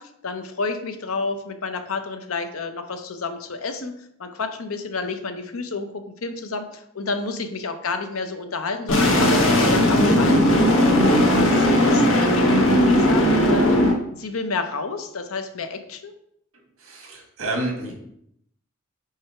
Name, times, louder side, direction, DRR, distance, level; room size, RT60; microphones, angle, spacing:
voice 1, 0.0-10.5 11.3-16.1, left 4 dB, 85° left, 7 dB, 0.7 m, -30 dB
sound 1, 8.9-13.9, left 1 dB, 70° left, 1.1 m, -17 dB
voice 2, 11.0-11.4 16.8-17.9, right 1 dB, 85° right, 0 dB, 1.7 m, -30 dB
4.9 x 4.7 x 4.3 m, 0.74 s
head